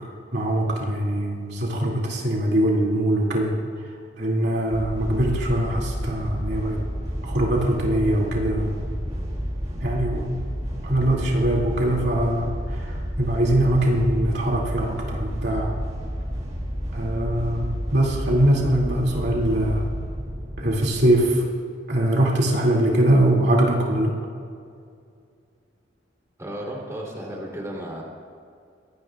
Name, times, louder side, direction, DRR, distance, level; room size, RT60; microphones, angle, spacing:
voice 1, 0.3-3.6 4.2-6.8 7.2-8.9 9.8-10.3 10.8-15.7 16.9-19.9 20.6-21.4 21.9-24.1, right 1 dB, 65° right, -2 dB, 2.4 m, -22 dB
sound 1, 4.7-21.3, equal, 35° right, 1.9 m, -30 dB
voice 2, 26.4-28.0, right 1 dB, 15° right, -3 dB, 3.1 m, -33 dB
23.0 x 17.5 x 2.4 m, 2.3 s
head